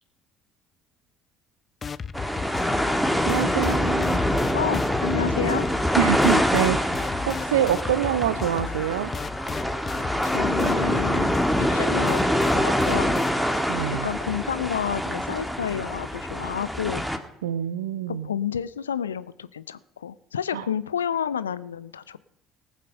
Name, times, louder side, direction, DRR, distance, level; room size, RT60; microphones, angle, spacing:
sound 1, 1.8-13.9, left 6 dB, 35° left, 0.5 m, -35 dB
sound 2, 2.1-17.2, equal, ahead, 1.7 m, -25 dB
voice 1, 3.3-4.2 6.0-7.0 7.3-9.1 13.7-14.1 17.4-18.3 20.5-20.7, right 10 dB, 75° right, 15 dB, 0.5 m, -25 dB
voice 2, 4.5-5.7 10.0-13.2 14.0-17.0 18.1-22.2, left 8 dB, 85° left, 17 dB, 0.5 m, -30 dB
19.0 x 7.5 x 5.6 m, 0.85 s
figure-of-eight pair, 55°, 0 cm